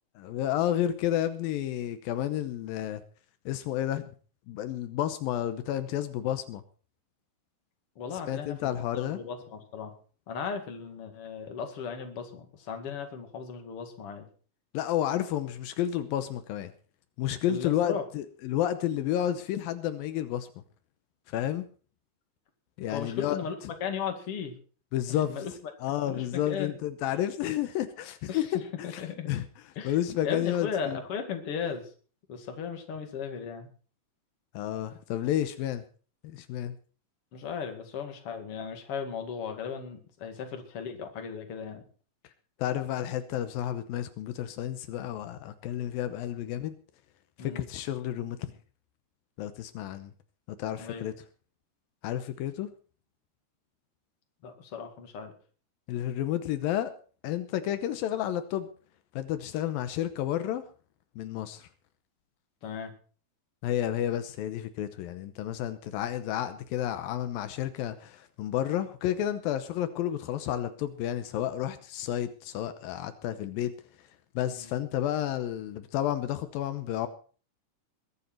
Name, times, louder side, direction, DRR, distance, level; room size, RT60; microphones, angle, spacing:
voice 1, 0.2-3.0 3.5-4.1 4.5-6.6 8.3-9.2 14.7-16.7 17.2-20.5 21.3-21.7 22.8-23.4 24.9-25.4 25.8-29.5 29.8-31.0 34.5-35.8 36.2-36.8 42.6-46.8 47.4-48.5 49.4-50.1 50.6-51.1 52.0-52.7 55.9-56.9 57.2-58.7 59.2-60.6 61.2-61.7 63.6-73.7 74.4-77.1, left 11 dB, 85° left, 10 dB, 2.6 m, -31 dB
voice 2, 8.0-9.9 10.3-14.3 17.5-18.0 22.9-24.5 25.3-25.5 26.0-26.7 28.3-29.3 29.8-30.0 30.2-31.9 32.3-33.7 37.3-41.8 47.4-47.7 50.8-51.1 54.4-55.3 62.6-62.9 74.4-74.8, left 6 dB, 45° left, 5 dB, 2.7 m, -36 dB
21.5 x 10.0 x 4.5 m, 0.41 s
omnidirectional pair, 4.1 m